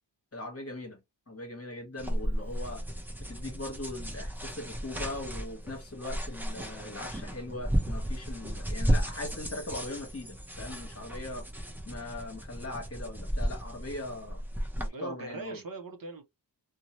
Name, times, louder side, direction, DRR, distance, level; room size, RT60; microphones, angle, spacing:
voice 1, 0.3-1.0 1.3-2.8 3.2-11.5 11.9-14.4 14.8-15.6, left 2 dB, 30° left, 1.0 m, -40 dB
sound 1, 2.0-14.9, equal, 5° right, 0.6 m, -34 dB
voice 2, 14.7-16.3, right 3 dB, 50° right, 0.6 m, -41 dB
2.7 x 2.1 x 2.9 m
wide cardioid pair, 110°, 44 cm